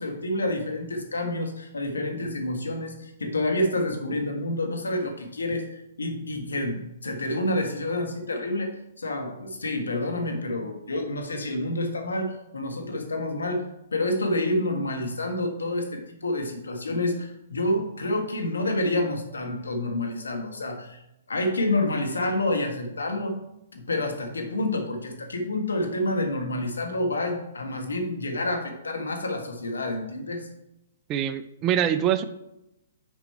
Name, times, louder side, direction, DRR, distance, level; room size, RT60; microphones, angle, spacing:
voice 1, 0.0-13.6 13.9-21.0 21.3-23.4 23.7-30.5, left 1 dB, 85° left, 4 dB, 1.5 m, -28 dB
voice 2, 31.1-32.2, right 10 dB, 30° right, 12 dB, 0.5 m, -24 dB
6.9 x 5.2 x 4.3 m, 0.86 s
hypercardioid pair, 125°, 0 cm